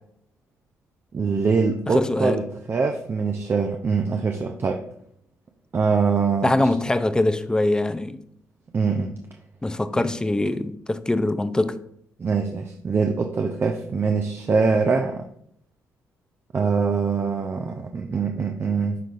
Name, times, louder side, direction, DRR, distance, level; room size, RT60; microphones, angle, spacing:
voice 1, 1.1-4.8 5.7-6.7 8.7-9.1 9.9-10.1 12.2-15.2 16.5-19.0, right 5 dB, 40° right, 3 dB, 0.6 m, -23 dB
voice 2, 1.9-2.4 6.4-8.2 9.6-11.8, left 2 dB, 10° left, 11 dB, 0.5 m, -23 dB
11.0 x 3.9 x 2.5 m, 0.71 s
cardioid pair, 75°, 6 cm